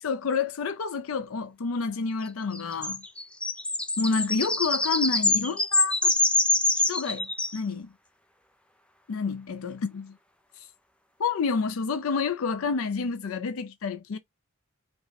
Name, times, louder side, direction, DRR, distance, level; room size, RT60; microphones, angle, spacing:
voice 1, 0.0-3.0 4.0-6.1 6.9-7.9 9.1-10.2 10.6-10.7 11.2-14.2, left 5 dB, 70° left, 0.5 m, -29 dB
sound 1, 2.5-7.6, left 2 dB, 5° left, 0.4 m, -25 dB
5.1 x 2.2 x 4.0 m
head